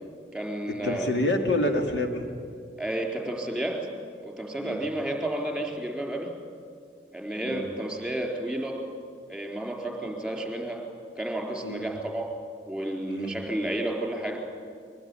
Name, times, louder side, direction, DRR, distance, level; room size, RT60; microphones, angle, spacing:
voice 1, 0.3-1.0 2.8-3.8 4.2-6.3 7.1-8.8 9.3-10.8 11.2-12.3 12.7-14.4, right 1 dB, ahead, 1 dB, 4.1 m, -31 dB
voice 2, 0.8-2.3 4.6-4.8 7.4-7.7 11.6-11.9 13.1-13.4, left 1 dB, 80° left, 4 dB, 2.7 m, -27 dB
22.0 x 22.0 x 10.0 m, 2.3 s
head